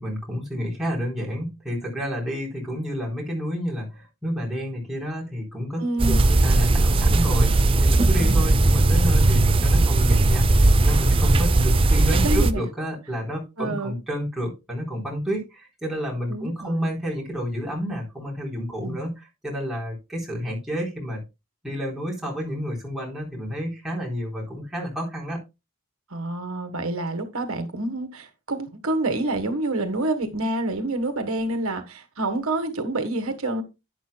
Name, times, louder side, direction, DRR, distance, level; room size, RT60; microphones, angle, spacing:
voice 1, 0.0-5.8 6.1-7.5 7.8-19.1 19.4-21.2 21.6-25.4, equal, ahead, 3.9 m, -30 dB
voice 2, 5.8-6.2 8.2-8.4 12.2-12.6 13.6-14.0 16.3-16.9 18.8-19.0 26.1-33.6, right 2 dB, 70° right, 1.4 m, -27 dB
sound 1, 6.0-12.5, right 2 dB, 25° right, 0.5 m, -18 dB
11.5 x 9.5 x 2.2 m
head